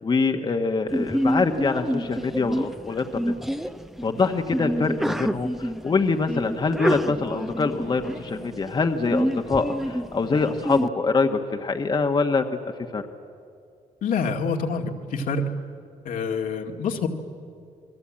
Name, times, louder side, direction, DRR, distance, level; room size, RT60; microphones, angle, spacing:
voice 1, 0.0-3.3 4.0-12.4 12.9-13.0, left 4 dB, 30° left, 5 dB, 1.3 m, -24 dB
Sneeze, 0.9-10.9, equal, ahead, 0.8 m, -28 dB
voice 2, 14.0-15.5 16.0-17.1, left 4 dB, 70° left, 2 dB, 2.3 m, -26 dB
28.5 x 21.5 x 8.8 m, 2.4 s
cardioid pair, 105°, 14 cm